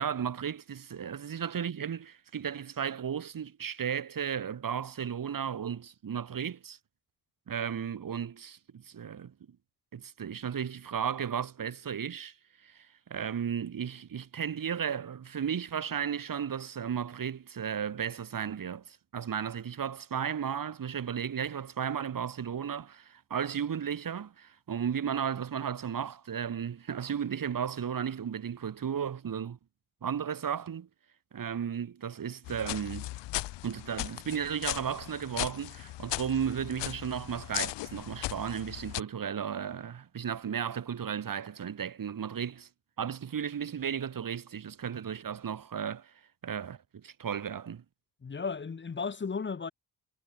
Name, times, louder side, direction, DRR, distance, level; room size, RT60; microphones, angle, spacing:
voice 1, 0.0-6.8 7.5-9.3 9.9-12.3 12.6-29.6 30.0-30.9 31.3-33.1 33.6-42.7 43.0-46.1 46.4-47.8, right 8 dB, 50° right, 1.7 m, -34 dB
sound 1, 32.4-39.0, left 17 dB, 75° left, 0.7 m, -37 dB
voice 2, 48.2-49.7, left 5 dB, 25° left, 0.9 m, -34 dB
supercardioid pair, 55°, 42 cm